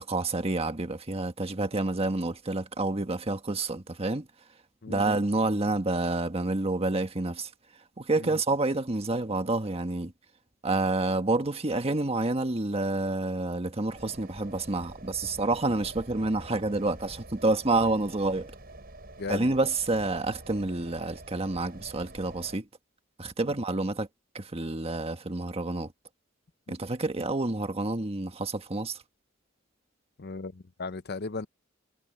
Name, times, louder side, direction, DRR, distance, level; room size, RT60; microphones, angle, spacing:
voice 1, 0.0-4.3 4.9-7.5 8.0-10.1 10.6-18.5 19.3-22.7 23.2-24.1 24.3-25.9 26.7-29.0, right 2 dB, 30° right, 1.5 m, -28 dB
sound 1, 13.9-22.6, right 2 dB, 50° right, 7.5 m, -47 dB
voice 2, 30.2-31.5, left 3 dB, 55° left, 0.8 m, -36 dB
head